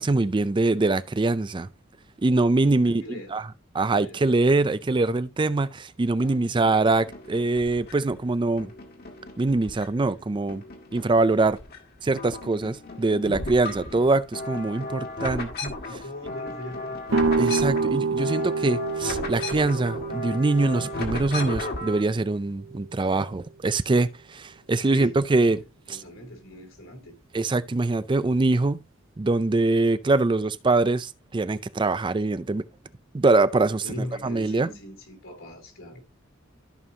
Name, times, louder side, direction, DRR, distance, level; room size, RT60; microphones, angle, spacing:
voice 1, 0.0-1.7 2.2-3.5 3.7-8.7 9.4-10.6 10.9-11.6 12.0-15.8 17.4-25.6 25.9-26.0 27.3-28.8 29.2-32.6 33.1-33.9 34.2-34.7, right 3 dB, 25° right, 0.4 m, -23 dB
voice 2, 2.8-3.3 4.0-4.2 6.2-6.6 13.7-14.0 15.9-17.0 24.7-25.5 25.9-27.2 33.8-36.0, left 1 dB, 70° left, 3.3 m, -40 dB
sound 1, 6.6-8.1 8.6-10.2 10.5-11.8 12.1-22.0, left 2 dB, 50° left, 1.9 m, -35 dB
sound 2, 17.1-22.8, right 4 dB, 70° right, 0.6 m, -28 dB
14.0 x 5.4 x 2.7 m
head